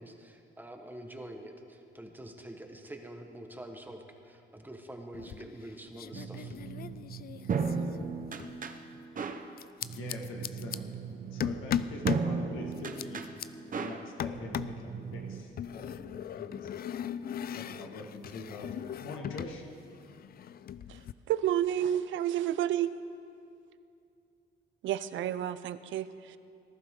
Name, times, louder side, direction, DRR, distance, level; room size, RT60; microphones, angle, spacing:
voice 1, 0.0-6.6, right 1 dB, 10° right, 4 dB, 1.3 m, -46 dB
sound 1, 5.1-5.7 6.0-8.6 9.6-10.8 11.4-12.3 12.7-13.5 14.2-14.8 15.6-19.6 19.8-21.1, left 9 dB, 50° left, 0.4 m, -38 dB
sound 2, 6.1-15.4, right 5 dB, 40° right, 0.9 m, -36 dB
voice 2, 9.9-10.8 11.3-16.7 17.5-18.7 19.0-19.6, left 3 dB, 90° left, 0 dB, 1.7 m, -44 dB
voice 3, 21.3-22.9 24.8-26.4, right 11 dB, 75° right, 14 dB, 0.6 m, -30 dB
19.0 x 11.5 x 3.8 m, 2.5 s
cardioid pair, 90°, 20 cm